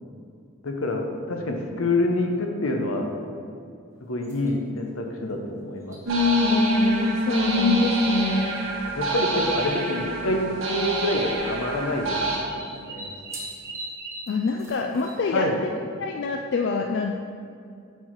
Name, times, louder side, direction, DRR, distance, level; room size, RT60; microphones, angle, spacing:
voice 1, 0.6-3.1 4.1-6.0 9.0-13.1 15.3-15.6, left 2 dB, 80° left, 2 dB, 0.9 m, -27 dB
sound 1, 4.2-4.6 5.9-7.2 7.4-8.4 9.3-9.4 9.6-9.7 10.7-11.0 12.2-15.4, right 2 dB, 15° right, 0.9 m, -40 dB
sound 2, 6.1-12.4, equal, 70° right, 1.5 m, -24 dB
voice 2, 6.4-8.6 14.3-17.1, left 4 dB, 55° left, 3 dB, 0.3 m, -27 dB
8.2 x 4.6 x 4.6 m, 2.4 s
head